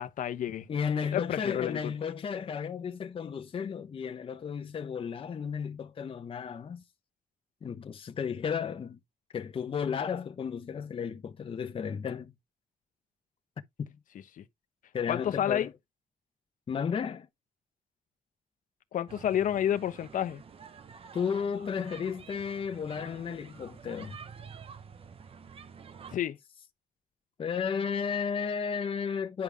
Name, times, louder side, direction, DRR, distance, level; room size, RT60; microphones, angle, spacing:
voice 1, 0.0-0.7 1.1-1.9 14.4-14.5 15.1-15.7 18.9-20.4 26.1-26.4, left 10 dB, 70° left, 1.1 m, -30 dB
voice 2, 0.7-6.8 7.6-9.0 9.3-12.3 13.8-13.9 14.9-15.7 16.7-17.3 21.1-24.2 27.4-29.4, left 6 dB, 40° left, 1.0 m, -33 dB
sound 1, 19.1-26.2, right 6 dB, 45° right, 1.0 m, -49 dB
10.0 x 5.4 x 3.5 m
wide cardioid pair, 155°, 14 cm